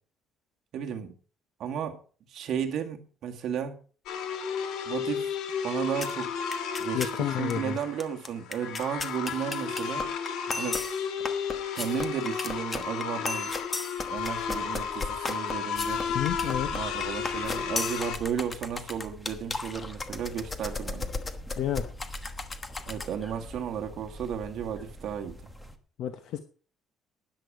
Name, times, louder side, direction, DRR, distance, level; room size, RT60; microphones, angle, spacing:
voice 1, 0.7-1.2 1.6-2.0 2.3-3.8 4.9-5.3 5.6-6.3 6.8-10.1 10.5-10.8 11.7-13.5 14.1-16.1 16.7-21.1 22.9-25.4, right 8 dB, 55° right, 1.9 m, -34 dB
sound 1, 4.1-18.2, left 7 dB, 80° left, 2.0 m, -33 dB
sound 2, 6.0-6.2 6.5-7.2 7.5-7.6 7.8-23.1, left 3 dB, 20° left, 1.1 m, -35 dB
voice 2, 6.9-7.8 16.1-16.8 21.6-21.9 26.0-26.4, left 10 dB, 60° left, 1.0 m, -30 dB
sound 3, 15.7-25.8, equal, 5° left, 1.4 m, -45 dB
13.0 x 10.5 x 4.9 m
cardioid pair, 165°, 0 cm